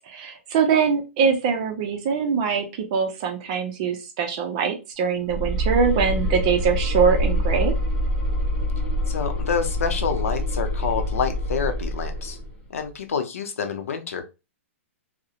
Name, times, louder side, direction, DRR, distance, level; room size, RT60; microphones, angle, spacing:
voice 1, 0.1-7.7, right 6 dB, 30° right, 4 dB, 0.5 m, -23 dB
sound 1, 5.3-12.5, equal, 45° left, 1.2 m, -25 dB
voice 2, 9.1-12.4 12.7-14.2, left 6 dB, 85° left, 6 dB, 0.6 m, -27 dB
2.4 x 2.1 x 2.8 m, 0.28 s
hypercardioid pair, 170°, 7 cm